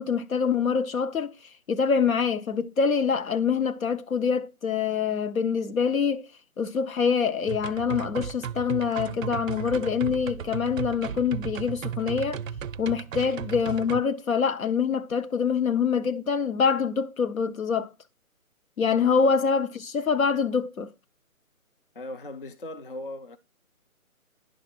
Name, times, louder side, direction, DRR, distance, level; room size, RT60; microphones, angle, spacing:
voice 1, 0.0-1.3 1.7-6.3 6.6-12.4 12.8-17.9 18.8-20.9, left 6 dB, 70° left, 0.9 m, -25 dB
sound 1, 7.5-14.0, right 8 dB, 65° right, 0.5 m, -35 dB
voice 2, 21.9-23.4, left 1 dB, 40° left, 0.4 m, -39 dB
10.5 x 3.6 x 4.3 m
figure-of-eight pair, 155°, 43 cm